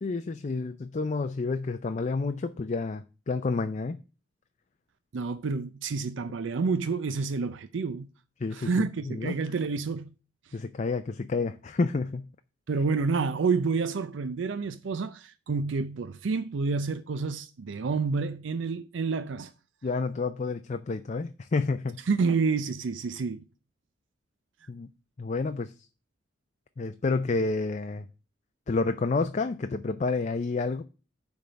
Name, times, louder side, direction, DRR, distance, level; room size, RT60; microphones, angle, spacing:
voice 1, 0.0-4.0 8.4-9.4 10.5-12.2 19.8-22.0 24.7-24.9 25.2-25.7 26.8-28.1 28.7-30.8, left 3 dB, 40° left, 0.4 m, -29 dB
voice 2, 5.1-8.1 8.5-10.1 12.7-19.5 22.1-23.5, right 4 dB, 75° right, 0.5 m, -29 dB
10.0 x 3.6 x 6.5 m
head